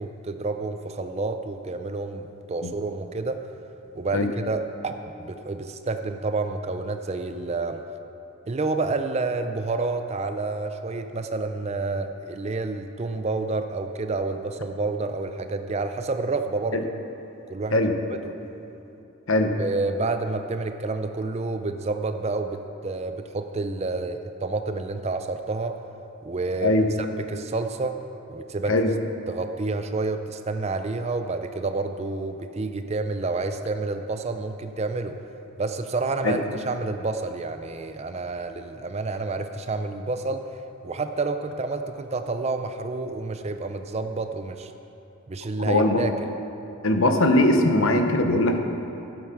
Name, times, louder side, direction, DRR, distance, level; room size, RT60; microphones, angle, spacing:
voice 1, 0.0-3.4 3.9-7.8 8.5-16.8 17.5-17.8 18.1-18.2 19.6-25.8 26.2-28.0 28.3-28.7 29.3-35.2 35.6-40.4 40.8-44.7 45.3-46.3, right 3 dB, 30° right, 8 dB, 0.4 m, -29 dB
voice 2, 45.6-46.0 46.8-48.6, left 1 dB, 70° left, 5 dB, 0.9 m, -20 dB
12.5 x 7.9 x 5.8 m, 2.9 s
head